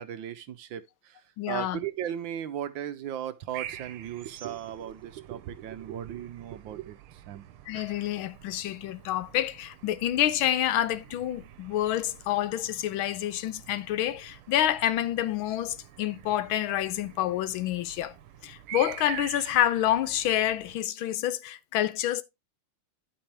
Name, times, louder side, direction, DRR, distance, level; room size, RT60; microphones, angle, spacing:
voice 1, 0.0-1.2 1.5-7.0 7.3-7.4, right 10 dB, 70° right, 1.3 m, -36 dB
voice 2, 1.4-1.8 7.7-18.2 18.4-22.2, left 12 dB, 75° left, 1.4 m, -28 dB
sound 1, 3.5-20.8, right 12 dB, 85° right, 1.6 m, -46 dB
12.0 x 5.4 x 3.3 m
omnidirectional pair, 2.3 m